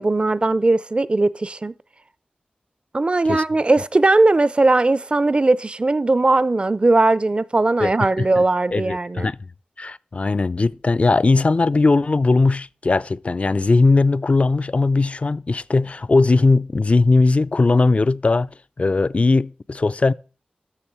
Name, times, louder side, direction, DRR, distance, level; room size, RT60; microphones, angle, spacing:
voice 1, 0.0-1.7 2.9-9.3, right 2 dB, 35° right, 0.5 m, -18 dB
voice 2, 8.7-9.4 9.8-18.5 18.8-20.1, left 3 dB, 45° left, 0.4 m, -18 dB
12.5 x 6.7 x 4.5 m
cardioid pair, 55°, 3 cm